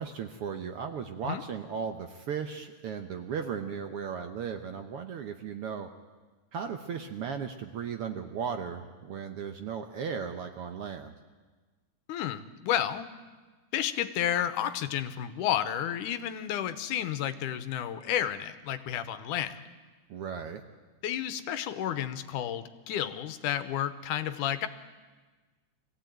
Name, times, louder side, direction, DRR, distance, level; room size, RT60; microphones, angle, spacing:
voice 1, 0.0-5.9 6.5-11.1 20.1-20.6, right 6 dB, 65° right, 7 dB, 1.5 m, -36 dB
voice 2, 12.1-13.0 13.7-19.6 21.0-24.7, left 10 dB, 85° left, 12 dB, 2.4 m, -31 dB
23.5 x 16.0 x 9.2 m, 1.3 s
omnidirectional pair, 3.5 m